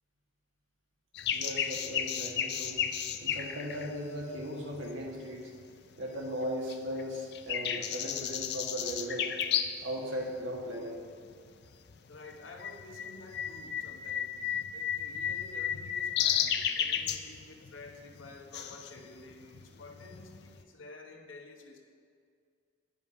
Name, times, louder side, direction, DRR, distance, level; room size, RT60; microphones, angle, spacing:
sound 1, 1.1-5.1 5.6-6.4 6.7-9.9 10.2-10.3 11.0-11.3 11.6-20.6, left 9 dB, 55° left, 0.4 m, -33 dB
voice 1, 1.3-5.5 6.0-9.3 9.8-11.0, equal, 85° right, -1 dB, 1.6 m, -38 dB
voice 2, 12.1-21.8, left 2 dB, 90° left, 3 dB, 1.0 m, -51 dB
9.9 x 5.3 x 4.9 m, 2.2 s
head